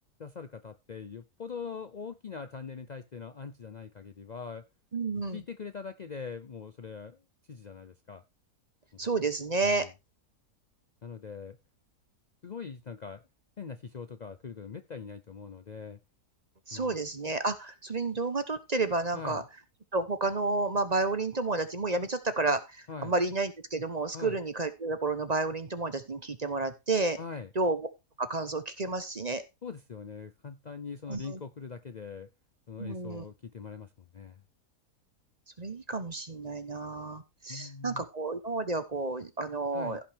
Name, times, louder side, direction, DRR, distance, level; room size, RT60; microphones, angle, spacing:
voice 1, 0.2-4.6 5.3-7.2 7.5-8.2 8.9-9.0 9.6-9.9 11.0-11.6 12.4-13.2 13.6-16.0 16.7-16.9 19.1-19.4 22.9-23.1 24.1-24.4 27.2-27.5 29.6-32.3 32.7-34.4 37.5-38.0 39.7-40.0, left 5 dB, 85° left, 0.3 m, -42 dB
voice 2, 4.9-5.4 9.0-9.9 16.7-19.4 19.9-27.2 27.5-27.8 28.2-29.4 31.1-31.4 32.8-33.2 35.6-40.0, right 3 dB, 30° right, 0.9 m, -31 dB
16.0 x 5.8 x 3.4 m
omnidirectional pair, 1.7 m